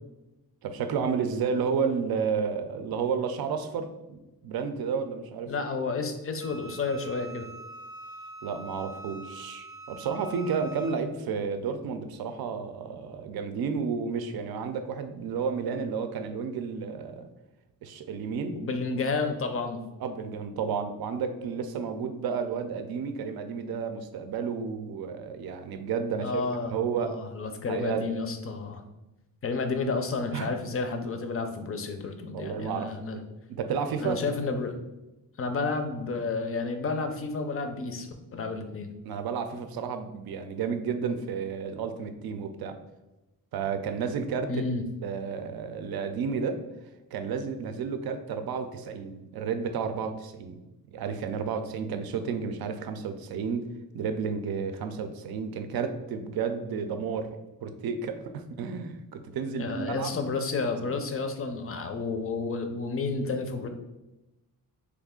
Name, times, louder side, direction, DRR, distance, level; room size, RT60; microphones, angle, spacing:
voice 1, 0.6-5.5 8.4-17.3 17.8-18.6 20.0-26.4 26.7-27.2 27.7-28.1 30.3-30.5 32.3-33.2 33.5-34.2 39.1-42.8 43.5-44.6 45.0-46.6 47.1-50.6 50.9-53.7 53.9-60.2, right 6 dB, 75° right, 8 dB, 0.5 m, -31 dB
voice 2, 5.5-7.5 18.6-19.8 26.2-26.7 27.0-28.8 29.4-33.2 34.0-34.8 35.4-38.1 38.3-38.9 44.5-44.8 59.6-63.7, left 4 dB, 40° left, 6 dB, 0.5 m, -31 dB
Wind instrument woodwind instrument, 6.4-11.0, right 2 dB, 10° right, 0.5 m, -44 dB
3.2 x 2.4 x 3.6 m, 0.99 s
cardioid pair, 110°, 37 cm